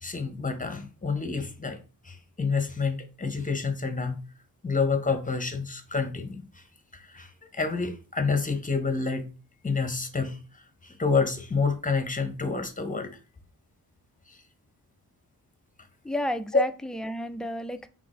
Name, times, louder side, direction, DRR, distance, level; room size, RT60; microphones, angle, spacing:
voice 1, 0.0-1.8 2.0-4.2 4.6-6.6 6.9-9.3 9.6-13.1 14.3-14.4 16.5-16.6, left 4 dB, 20° left, 0.9 m, -28 dB
voice 2, 16.0-17.9, equal, ahead, 0.4 m, -31 dB
3.7 x 3.4 x 3.8 m
cardioid pair, 55°, 38 cm